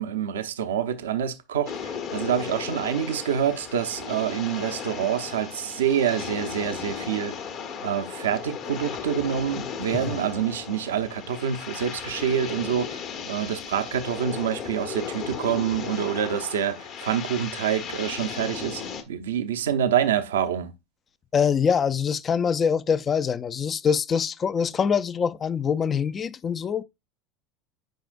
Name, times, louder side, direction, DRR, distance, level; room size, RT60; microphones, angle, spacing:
voice 1, 0.0-7.4 7.8-20.7, right 9 dB, 85° right, 0.6 m, -27 dB
sound 1, 1.7-19.0, left 7 dB, 55° left, 1.2 m, -36 dB
voice 2, 21.3-26.8, left 7 dB, 35° left, 0.4 m, -24 dB
9.1 x 4.9 x 2.5 m
hypercardioid pair, 80°, 0 cm